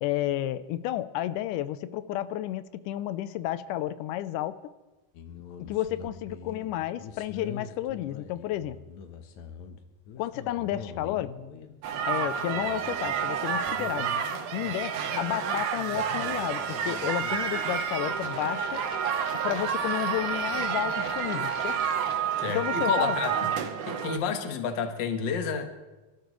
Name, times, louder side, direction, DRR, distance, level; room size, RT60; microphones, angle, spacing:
voice 1, 0.0-4.6 5.6-8.8 10.2-11.3 12.1-14.1 14.5-18.8 19.4-21.8 22.5-23.2, left 13 dB, 85° left, 14 dB, 2.2 m, -31 dB
sound 1, 5.1-22.2, left 7 dB, 70° left, 2.2 m, -44 dB
sound 2, 11.8-24.2, right 7 dB, 75° right, 2.5 m, -30 dB
voice 2, 22.4-23.5 23.8-25.7, left 6 dB, 55° left, 6 dB, 1.4 m, -30 dB
26.5 x 13.0 x 3.1 m, 1.2 s
omnidirectional pair, 3.6 m